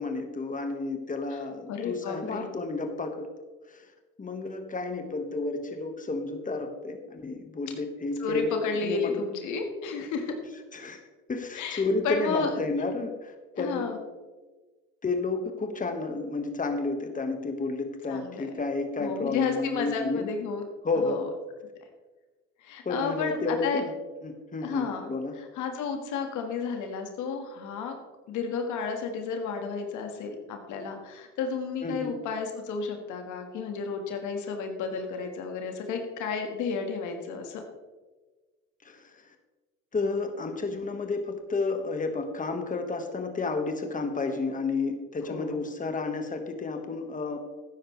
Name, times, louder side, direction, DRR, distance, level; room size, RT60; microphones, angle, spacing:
voice 1, 0.0-3.3 3.7-3.9 4.2-9.2 10.7-11.0 11.3-13.9 15.0-20.3 20.8-21.3 22.8-23.9 24.2-25.4 31.8-32.1 38.8-39.3 39.9-47.4, left 3 dB, 25° left, 5 dB, 1.6 m, -31 dB
voice 2, 1.7-2.5 8.2-10.3 11.5-12.5 13.6-14.0 18.1-18.5 19.0-20.6 21.0-21.2 22.6-23.8 24.6-25.1 25.4-28.0 28.3-37.6 45.3-45.6, left 5 dB, 75° left, 4 dB, 1.7 m, -32 dB
13.5 x 9.9 x 3.3 m, 1.3 s
supercardioid pair, 70°, 31 cm